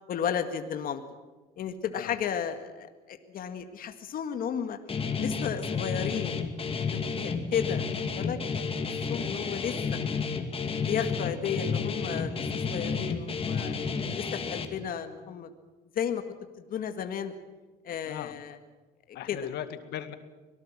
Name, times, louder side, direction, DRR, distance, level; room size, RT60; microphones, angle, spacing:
voice 1, 0.1-1.0 1.6-4.8 5.2-6.4 6.8-8.8 9.1-9.7 10.6-13.8 14.1-15.5 16.0-16.2 16.6-17.3 17.8-18.6 19.1-19.4, left 8 dB, 60° left, 7 dB, 1.9 m, -33 dB
Guitar, 4.9-14.7, left 5 dB, 35° left, 2.5 m, -31 dB
voice 2, 19.1-20.1, left 10 dB, 75° left, 10 dB, 2.0 m, -38 dB
25.0 x 19.0 x 7.5 m, 1.2 s
cardioid pair, 110°, 17 cm